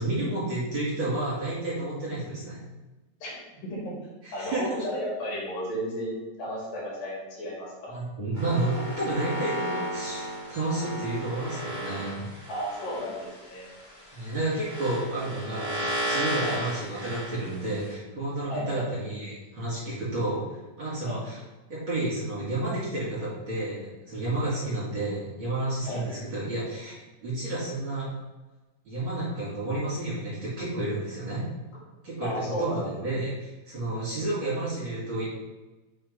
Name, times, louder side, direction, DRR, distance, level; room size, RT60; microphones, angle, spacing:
voice 1, 0.0-2.6 4.2-4.8 7.9-12.3 14.1-20.4 20.8-21.4 21.7-28.1 28.8-31.4 32.0-35.3, right 2 dB, 40° right, -7 dB, 2.9 m, -31 dB
voice 2, 3.2-4.0 4.3-7.9 12.5-13.7 16.4-16.6 18.5-18.9 21.0-21.2 25.9-26.0 32.2-32.9 34.1-34.2, equal, 70° left, -5 dB, 3.9 m, -34 dB
sound 1, 8.3-17.9, right 1 dB, 50° left, 0.5 m, -34 dB
6.4 x 4.3 x 5.4 m, 1.1 s
omnidirectional pair, 4.1 m